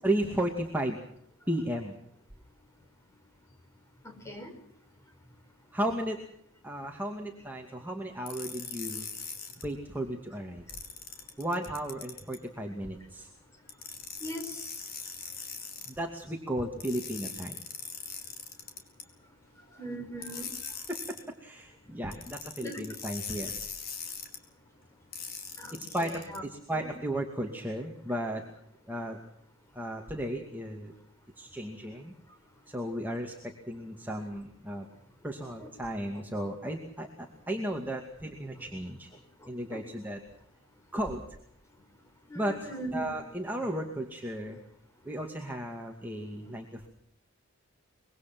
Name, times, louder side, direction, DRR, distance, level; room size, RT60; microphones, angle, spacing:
voice 1, 0.0-1.0 1.5-2.0 5.7-6.2 6.6-9.1 9.6-10.6 11.4-13.3 15.4-15.5 15.9-17.6 20.9-23.5 25.7-28.5 28.9-29.2 29.7-30.9 31.4-32.1 32.7-34.9 35.2-39.1 39.5-40.2 40.9-41.2 42.3-44.6 45.0-46.9, right 1 dB, 10° right, 0 dB, 2.3 m, -34 dB
voice 2, 4.0-4.5 14.2-14.8 19.8-20.5 22.6-22.9 25.6-26.4 26.7-26.9 35.4-35.7 36.1-36.2 39.7-39.8 42.3-43.1, equal, 15° left, 4 dB, 5.3 m, -40 dB
sound 1, 8.3-9.6 10.7-12.4 13.7-15.9 16.8-19.0 20.2-21.2 22.1-24.4 25.1-26.4, left 6 dB, 45° left, 4.5 m, -41 dB
25.0 x 23.0 x 6.1 m, 0.72 s
head